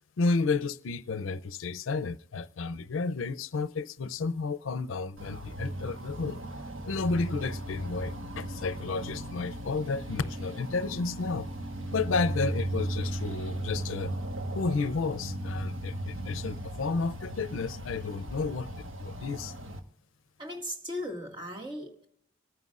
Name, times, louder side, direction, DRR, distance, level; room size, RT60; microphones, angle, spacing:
voice 1, 0.2-6.4 6.8-11.5 11.9-14.1 14.5-18.7 19.0-19.5, left 4 dB, 85° left, 0.5 m, -32 dB
sound 1, 5.2-19.8, right 1 dB, 85° right, 1.3 m, -36 dB
voice 2, 20.4-22.1, left 1 dB, 25° right, 2.0 m, -37 dB
25.5 x 9.4 x 2.4 m
head